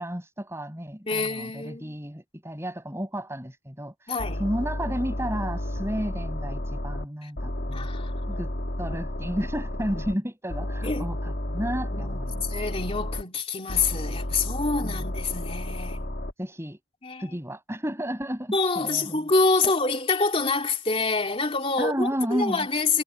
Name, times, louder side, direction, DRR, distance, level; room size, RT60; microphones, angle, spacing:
voice 1, 0.0-4.1 4.4-7.9 8.3-8.5 8.8-12.4 14.8-15.0 16.4-16.8 17.2-19.2 21.8-22.7, equal, 15° right, 7.0 m, -32 dB
voice 2, 1.1-2.0 4.1-4.5 7.2-7.3 7.7-8.2 10.8-11.1 11.9-16.0 17.0-17.3 18.5-23.0, left 3 dB, 30° left, 2.6 m, -26 dB
sound 1, 4.2-7.1 7.4-10.2 10.5-13.2 13.7-16.3, left 1 dB, 55° left, 2.3 m, -32 dB
head